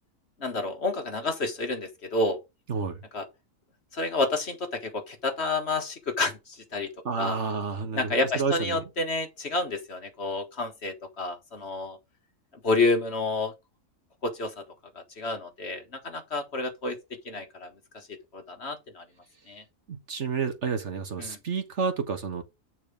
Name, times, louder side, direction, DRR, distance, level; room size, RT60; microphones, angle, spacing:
voice 1, 0.4-2.4 3.1-3.2 3.9-6.9 7.2-7.4 7.9-12.0 12.6-13.5 14.2-14.6 15.2-17.0 17.2-18.1 18.3-19.0 19.5-19.6 21.2-21.4, left 2 dB, 45° left, 1.7 m, -29 dB
voice 2, 2.7-3.0 7.0-8.8 19.9-22.4, right 5 dB, 55° right, 1.5 m, -30 dB
8.9 x 4.5 x 5.0 m
omnidirectional pair, 1.5 m